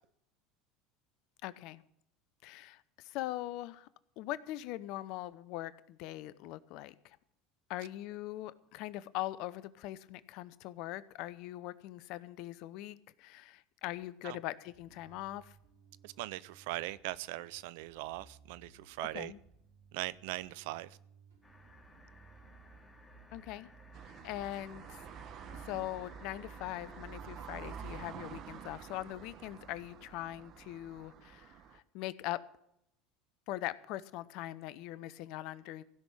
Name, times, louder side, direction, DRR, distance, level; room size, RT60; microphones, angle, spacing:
voice 1, 1.4-1.8 2.4-3.9 4.2-7.2 7.7-15.6 19.1-19.4 23.3-23.7 24.2-25.0 25.5-32.4 33.5-35.8, left 15 dB, 60° left, 0.7 m, -41 dB
Bass guitar, 14.7-24.3, right 5 dB, 85° right, 4.1 m, -62 dB
voice 2, 16.0-19.3 19.9-21.0, right 18 dB, 65° right, 0.5 m, -40 dB
sound 1, 21.4-27.2, equal, 15° left, 2.5 m, -57 dB
sound 2, 23.9-31.8, right 7 dB, 50° right, 1.1 m, -49 dB
16.0 x 6.1 x 10.0 m
hypercardioid pair, 75°, 0 cm